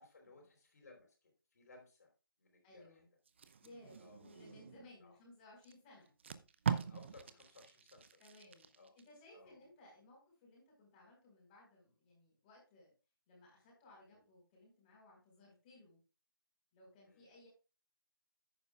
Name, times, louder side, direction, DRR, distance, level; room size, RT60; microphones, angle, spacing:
voice 1, 0.0-2.1 2.4-2.9 4.0-4.2 5.0-5.2 6.8-8.2 8.8-8.9 9.3-9.6 14.1-14.2 17.0-17.3, left 3 dB, 45° left, 2 dB, 3.8 m, -61 dB
voice 2, 2.6-3.1 3.6-6.1 8.2-12.9 13.3-16.0 16.7-17.5, left 2 dB, 20° left, -2 dB, 4.8 m, -61 dB
Packing tape duct tape, 3.2-4.9 5.6-5.7 6.1-9.0 9.5-9.7, right 7 dB, 30° right, 0.6 m, -42 dB
11.0 x 9.3 x 2.4 m, 0.33 s
figure-of-eight pair, 155°, 12 cm